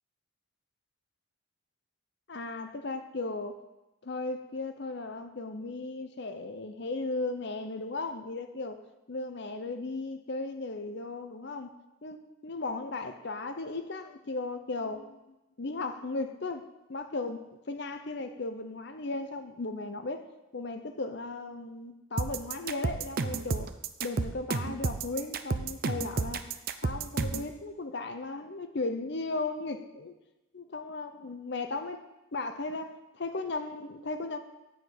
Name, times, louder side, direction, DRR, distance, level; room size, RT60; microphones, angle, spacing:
voice 1, 2.3-3.6 4.0-8.8 9.1-11.7 12.0-15.2 15.6-16.6 16.9-20.3 20.5-23.7 24.0-26.4 26.8-30.1 30.5-32.0 32.3-34.4, left 3 dB, 55° left, 0.7 m, -36 dB
sound 1, 22.2-27.5, right 4 dB, 45° right, 0.5 m, -31 dB
8.4 x 5.1 x 7.7 m
head